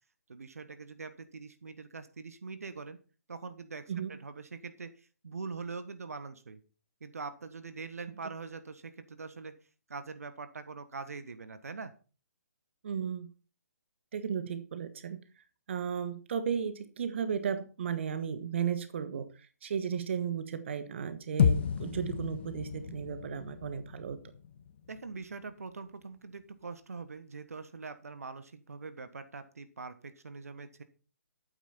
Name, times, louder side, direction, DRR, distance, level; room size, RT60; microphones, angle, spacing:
voice 1, 0.3-3.0 3.3-6.6 7.0-9.6 9.9-11.9 24.9-30.8, right 4 dB, 60° right, 1.3 m, -43 dB
voice 2, 12.8-13.3 14.1-15.2 15.7-19.3 19.6-24.2, right 7 dB, 45° right, 1.3 m, -34 dB
sound 1, 21.4-25.7, left 7 dB, 40° left, 0.9 m, -32 dB
12.0 x 9.2 x 4.3 m
figure-of-eight pair, 135°, 9 cm